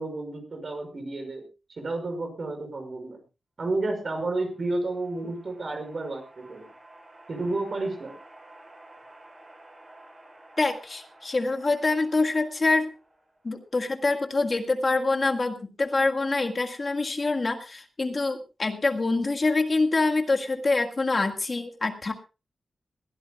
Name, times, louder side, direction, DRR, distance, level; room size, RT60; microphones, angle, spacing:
voice 1, 0.0-3.2 3.6-6.6 7.3-8.1, right 2 dB, 50° right, 5 dB, 6.0 m, -31 dB
sound 1, 4.3-13.7, right 1 dB, 25° right, 7.3 m, -52 dB
voice 2, 10.6-12.9 13.4-22.1, left 3 dB, 35° left, 5 dB, 1.8 m, -25 dB
21.5 x 15.5 x 2.3 m, 0.30 s
wide cardioid pair, 135°, 0 cm